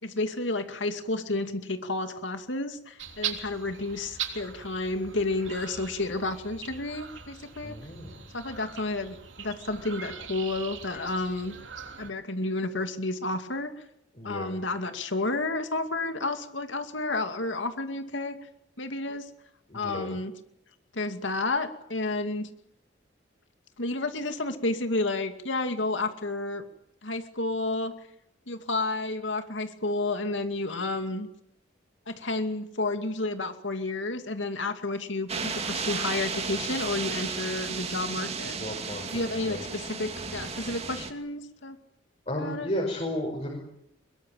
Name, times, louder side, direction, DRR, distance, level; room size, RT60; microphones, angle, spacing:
voice 1, 0.0-7.8 8.3-11.6 12.0-13.7 14.2-18.4 18.8-19.3 19.7-20.3 20.9-22.5 23.8-26.6 27.0-27.9 28.5-31.3 32.1-38.6 39.1-41.8 42.4-42.7, left 2 dB, 80° left, 7 dB, 2.4 m, -31 dB
sound 1, 3.0-12.1, right 8 dB, 85° right, 3.5 m, -41 dB
voice 2, 7.6-8.2 14.1-14.6 19.7-20.2 38.6-39.6 42.3-43.6, left 1 dB, 35° left, 0 dB, 5.3 m, -34 dB
sound 2, 35.3-41.1, right 5 dB, 35° right, 2.5 m, -34 dB
23.5 x 22.0 x 9.1 m, 0.79 s
head